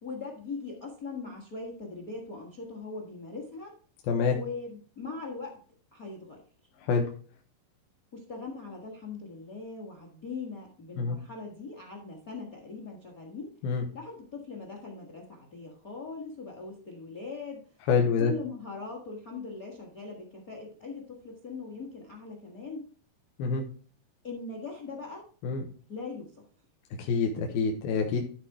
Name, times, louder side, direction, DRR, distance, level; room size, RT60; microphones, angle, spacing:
voice 1, 0.0-3.7 4.3-5.6 5.9-6.4 8.1-13.5 13.9-17.6 18.2-22.8 24.2-25.3 25.9-26.3, left 4 dB, 50° left, 2 dB, 1.0 m, -40 dB
voice 2, 17.9-18.3 23.4-23.6 25.4-25.6 27.0-28.2, left 5 dB, 80° left, 2 dB, 2.8 m, -26 dB
13.0 x 4.3 x 4.6 m, 0.42 s
omnidirectional pair, 4.3 m